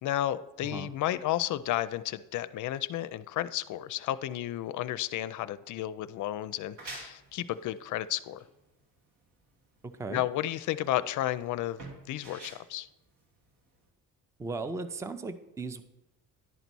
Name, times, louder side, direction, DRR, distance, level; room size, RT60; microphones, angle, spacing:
voice 1, 0.0-8.4 10.1-11.8 12.1-12.9, left 13 dB, 65° left, 14 dB, 0.4 m, -32 dB
sound 1, 6.5-13.9, right 3 dB, 80° right, 1.8 m, -49 dB
voice 2, 14.4-15.8, right 3 dB, 10° right, 11 dB, 0.4 m, -36 dB
11.0 x 4.0 x 6.0 m, 0.97 s
cardioid pair, 125°, 33 cm